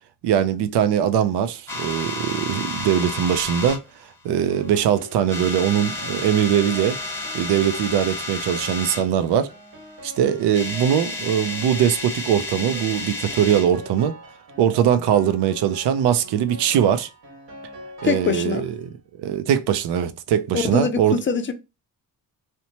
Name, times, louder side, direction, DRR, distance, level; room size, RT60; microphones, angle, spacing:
voice 1, 0.2-3.8 4.2-7.0 7.3-9.5 10.0-14.1 14.6-17.1 18.0-18.9 19.2-21.2, right 9 dB, 85° right, 0.5 m, -21 dB
sound 1, 1.7-3.8 4.5-4.9 5.2-9.1 10.1-10.2 10.4-13.7, left 3 dB, 5° left, 0.9 m, -31 dB
Piano, 4.5-18.9, equal, 65° right, 1.5 m, -43 dB
voice 2, 18.0-18.7 20.5-21.5, left 6 dB, 30° left, 0.4 m, -23 dB
2.8 x 2.1 x 2.8 m
cardioid pair, 110°, 39 cm